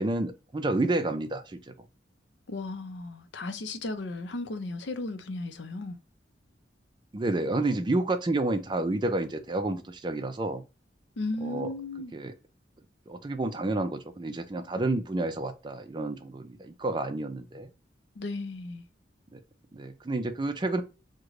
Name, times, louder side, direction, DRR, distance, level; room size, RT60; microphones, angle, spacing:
voice 1, 0.0-1.7 7.1-10.6 11.4-11.7 12.1-12.3 13.1-17.7 19.3-19.4 19.7-20.8, right 2 dB, 25° right, 0.4 m, -30 dB
voice 2, 2.5-6.0 11.2-12.1 18.2-18.8, left 2 dB, 75° left, 0.6 m, -35 dB
3.7 x 2.2 x 3.1 m
head